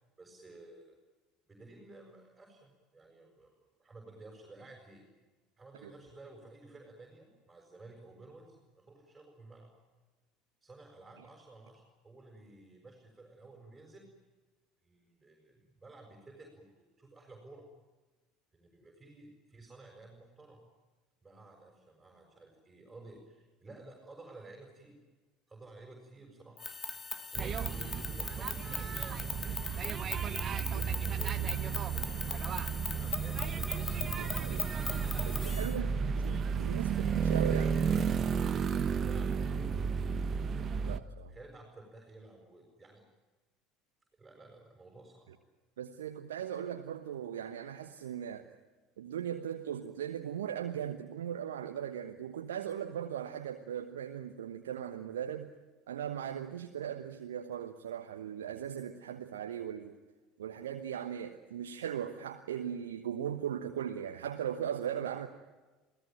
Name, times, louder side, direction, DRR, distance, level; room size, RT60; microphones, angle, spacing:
voice 1, 0.2-1.0 1.5-5.0 5.6-9.7 10.6-14.1 14.8-17.7 18.5-20.6 21.2-25.0 25.5-26.6 27.3-30.1 30.8-32.3 32.9-33.7 35.7-36.5 36.9-37.1 37.5-38.0 38.5-40.1 41.3-43.0 44.2-45.3, right 2 dB, 15° right, 1 dB, 6.6 m, -53 dB
sound 1, 26.6-35.8, left 4 dB, 25° left, 1.7 m, -40 dB
sound 2, 27.3-41.0, right 6 dB, 35° right, 1.3 m, -33 dB
voice 2, 34.1-34.7 35.2-37.7 40.8-41.3 45.8-48.5 49.0-55.5 55.9-60.0 60.4-65.3, right 9 dB, 70° right, 6 dB, 1.2 m, -38 dB
28.0 x 17.5 x 9.2 m, 1.2 s
figure-of-eight pair, 65°, 0 cm